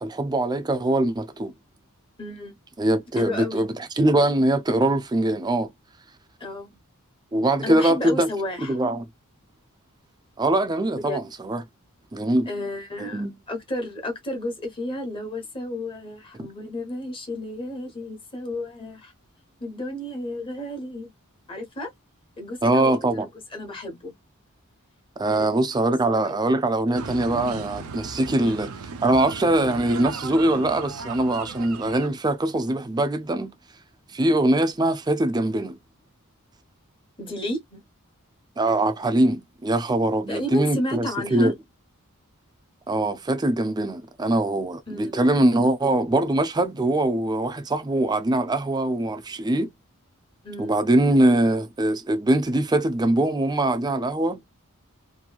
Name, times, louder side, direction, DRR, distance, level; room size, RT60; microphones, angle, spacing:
voice 1, 0.0-1.5 2.8-5.7 7.3-8.3 8.6-9.0 10.4-11.6 12.1-12.5 13.1-13.3 22.6-23.3 25.2-28.7 29.0-33.5 34.1-35.8 38.6-41.5 42.9-49.7 50.6-54.4, right 1 dB, 20° right, 0.4 m, -22 dB
voice 2, 2.2-2.6 3.2-3.7 6.4-6.7 7.6-8.8 11.0-11.2 12.5-19.1 19.6-21.1 21.5-21.9 22.4-23.0 23.5-24.1 25.3-25.5 28.3-28.6 37.2-37.8 40.3-41.5 44.9-45.1 50.4-50.7, left 1 dB, 25° left, 1.1 m, -32 dB
sound 1, 26.9-32.1, right 5 dB, 80° right, 0.6 m, -36 dB
2.9 x 2.6 x 2.3 m
head